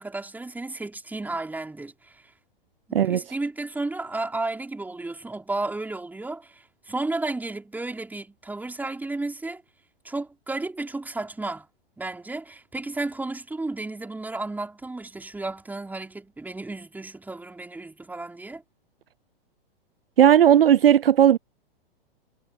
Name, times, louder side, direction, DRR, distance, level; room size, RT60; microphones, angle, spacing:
voice 1, 0.0-2.3 2.9-9.6 10.0-11.7 12.0-18.6, right 2 dB, 5° right, 4.1 m, -33 dB
voice 2, 2.9-3.2 20.2-21.4, right 10 dB, 70° right, 0.5 m, -16 dB
figure-of-eight pair, 105°, 30 cm